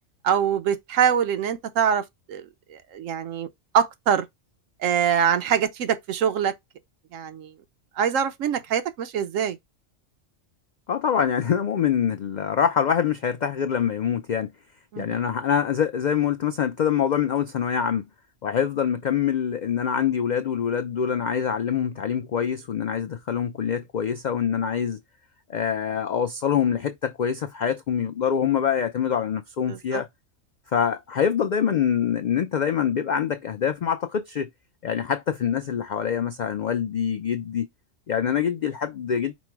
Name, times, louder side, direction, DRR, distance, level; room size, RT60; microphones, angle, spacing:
voice 1, 0.2-2.0 2.3-2.4 2.7-3.5 3.7-4.2 4.8-6.5 7.1-7.5 8.0-9.6 14.9-15.2 29.7-30.0, right 8 dB, 85° right, 1.1 m, -24 dB
voice 2, 10.9-14.5 15.0-18.0 18.4-25.0 25.5-30.1 30.7-34.5 34.8-37.7 38.1-39.3, left 8 dB, 85° left, 0.4 m, -25 dB
5.2 x 2.0 x 4.5 m
omnidirectional pair, 1.3 m